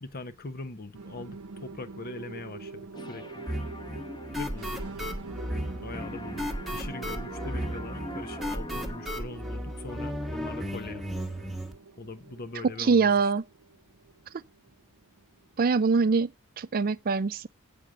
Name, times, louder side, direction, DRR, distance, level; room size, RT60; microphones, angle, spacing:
voice 1, 0.0-3.5 4.4-4.9 5.8-11.0 12.0-13.3, left 2 dB, 45° left, 0.9 m, -41 dB
sound 1, 0.9-15.5, right 4 dB, 80° right, 0.8 m, -45 dB
sound 2, 2.9-5.7 5.9-9.5, equal, 20° left, 1.2 m, -43 dB
sound 3, 3.5-11.7, equal, ahead, 1.4 m, -35 dB
voice 2, 12.8-13.4 15.6-16.3 16.6-17.5, right 4 dB, 40° right, 0.4 m, -23 dB
8.4 x 5.1 x 7.5 m
head